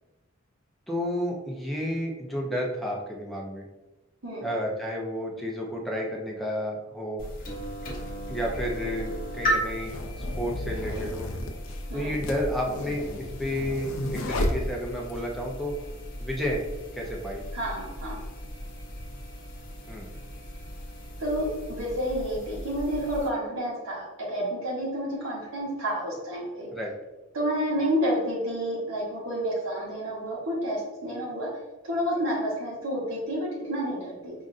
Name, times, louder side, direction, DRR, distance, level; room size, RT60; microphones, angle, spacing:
voice 1, 0.9-3.7 4.4-7.2 8.3-11.3 11.9-15.7 16.2-16.7 16.9-17.5 19.9-20.1 26.7-26.9, equal, ahead, -2 dB, 0.6 m, -31 dB
sound 1, 7.2-23.3, equal, 45° left, 0.8 m, -36 dB
sound 2, 7.8-7.9 8.8-15.2, left 1 dB, 85° left, 0.5 m, -33 dB
voice 2, 17.5-18.2 21.2-26.7 27.3-31.5 31.8-34.3, equal, 85° right, -5 dB, 1.3 m, -30 dB
5.2 x 2.5 x 2.5 m, 1.1 s
head